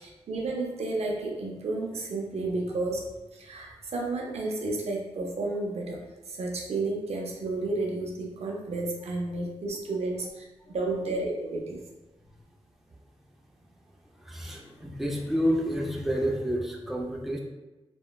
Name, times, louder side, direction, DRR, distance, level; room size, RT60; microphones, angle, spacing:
voice 1, 0.0-3.0 3.3-11.8, right 2 dB, 70° right, -1 dB, 0.5 m, -32 dB
voice 2, 14.0-17.4, equal, ahead, -1 dB, 0.4 m, -29 dB
2.9 x 2.2 x 2.3 m, 1.1 s
cardioid pair, 70°, 11 cm